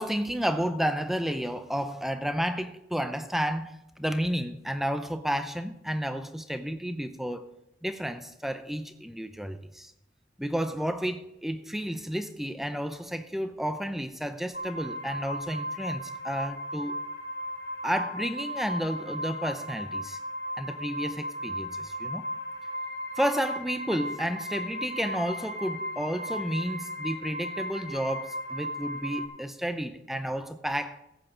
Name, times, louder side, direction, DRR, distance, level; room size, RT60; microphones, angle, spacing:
voice 1, 0.0-7.5 7.8-9.9 10.4-17.0 17.8-20.2 20.6-22.2 23.2-31.0, equal, ahead, 0.6 m, -31 dB
sound 1, 14.5-29.3, equal, 70° left, 2.0 m, -36 dB
15.5 x 8.2 x 3.9 m
head